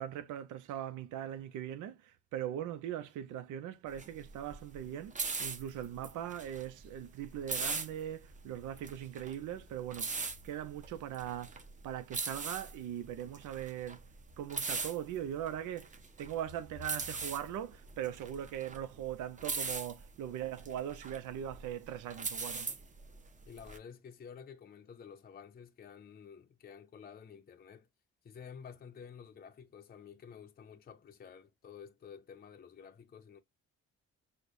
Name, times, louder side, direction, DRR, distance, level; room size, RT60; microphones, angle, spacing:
voice 1, 0.0-10.1 10.4-14.0 14.4-22.7, right 10 dB, 85° right, 0.6 m, -40 dB
sound 1, 3.9-23.8, right 4 dB, 25° right, 0.8 m, -40 dB
voice 2, 23.5-27.9 28.2-33.4, left 7 dB, 30° left, 0.6 m, -51 dB
6.3 x 2.2 x 2.5 m
cardioid pair, 90°, 30 cm